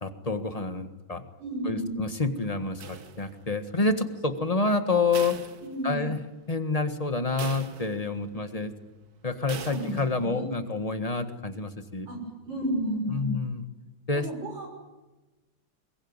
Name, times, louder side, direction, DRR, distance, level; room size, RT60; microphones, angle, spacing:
voice 1, 0.0-1.2 1.6-5.4 5.8-6.2 6.5-8.7 9.2-12.1 13.1-13.6 14.1-14.3, left 3 dB, 20° left, 9 dB, 1.5 m, -28 dB
voice 2, 1.4-1.9 5.6-6.0 9.6-10.4 12.1-12.2 12.4-13.3 14.1-14.7, right 1 dB, 70° right, 2 dB, 6.9 m, -32 dB
sound 1, 2.8-3.6 5.1-6.3 6.7-6.8 7.4-8.3 9.5-10.3, right 7 dB, 55° right, 1.6 m, -42 dB
23.5 x 21.5 x 9.7 m, 1.1 s
omnidirectional pair, 2.1 m